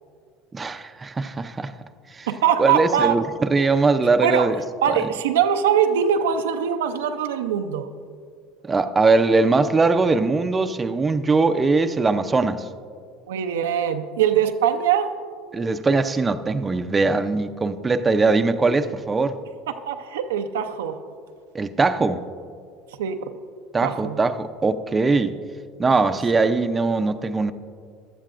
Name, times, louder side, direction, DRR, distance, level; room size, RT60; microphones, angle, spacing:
voice 1, 0.5-1.7 2.1-2.3 2.6-4.6 4.9-5.1 8.6-12.7 15.5-19.3 21.5-22.2 23.7-25.4 25.8-27.5, right 3 dB, 20° right, 9 dB, 0.5 m, -21 dB
voice 2, 2.3-3.1 4.2-4.5 4.8-7.9 13.3-15.1 19.9-21.0 23.0-23.3 23.8-24.2, right 8 dB, 85° right, 7 dB, 0.5 m, -22 dB
16.5 x 11.5 x 2.5 m, 2.2 s
hypercardioid pair, 85°, 0 cm